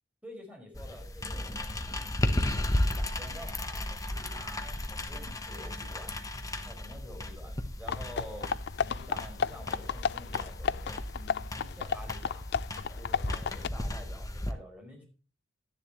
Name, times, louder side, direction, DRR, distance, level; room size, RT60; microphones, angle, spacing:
voice 1, 0.2-2.0 2.3-3.8 4.3-6.3 6.6-12.4 13.0-15.1, equal, 10° right, 1 dB, 4.8 m, -49 dB
sound 1, 0.7-14.5, left 1 dB, 20° left, 0.9 m, -35 dB
sound 2, 7.9-13.7, left 7 dB, 60° left, 0.4 m, -33 dB
12.5 x 10.5 x 2.9 m, 0.35 s
head